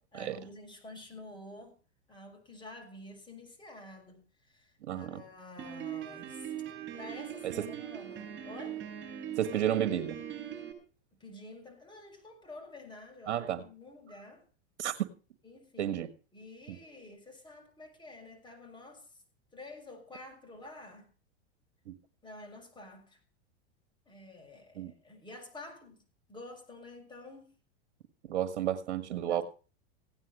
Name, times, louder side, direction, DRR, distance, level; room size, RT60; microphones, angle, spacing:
voice 1, 0.1-1.7 2.1-6.5 6.8-8.8 11.2-14.4 15.4-16.0 16.3-19.1 19.5-21.1 22.2-23.2 24.1-26.0 26.3-27.5 29.2-29.4, left 2 dB, 15° left, 6.3 m, -49 dB
voice 2, 4.8-5.2 7.4-7.7 9.4-10.2 13.3-13.6 14.8-14.9 15.8-16.1 16.7-16.8 21.9-22.0 24.7-24.9 28.3-29.4, right 10 dB, 75° right, 1.6 m, -32 dB
Piano, 5.6-10.7, right 10 dB, 35° right, 7.8 m, -41 dB
16.5 x 9.6 x 6.4 m
hypercardioid pair, 110°, 34 cm